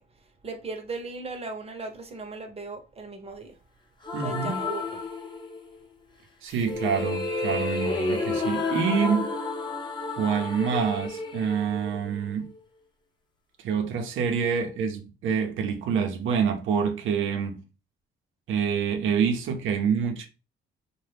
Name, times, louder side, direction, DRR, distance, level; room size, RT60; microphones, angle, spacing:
voice 1, 0.0-3.6 4.2-5.0, right 3 dB, 30° right, 0.8 m, -38 dB
sound 1, 4.0-5.8 6.5-12.6, left 3 dB, 25° left, 0.7 m, -31 dB
voice 2, 4.1-4.6 6.4-9.3 10.2-12.5 13.6-17.6 18.5-20.3, right 6 dB, 80° right, 0.7 m, -27 dB
2.7 x 2.2 x 3.3 m
cardioid pair, 90°, 20 cm